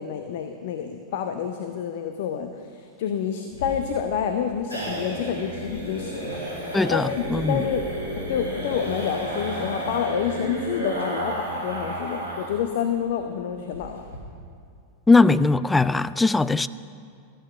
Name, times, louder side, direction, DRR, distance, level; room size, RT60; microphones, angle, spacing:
voice 1, 0.0-14.1, left 8 dB, 55° left, 7 dB, 0.7 m, -28 dB
sound 1, 3.5-12.6 12.9-13.0 13.3-13.4 13.7-14.2, right 1 dB, 80° left, 4.0 m, -32 dB
voice 2, 6.7-7.6 15.1-16.7, left 3 dB, 10° left, 15 dB, 0.3 m, -19 dB
14.0 x 8.7 x 6.7 m, 2.4 s
figure-of-eight pair, 90°, 0 cm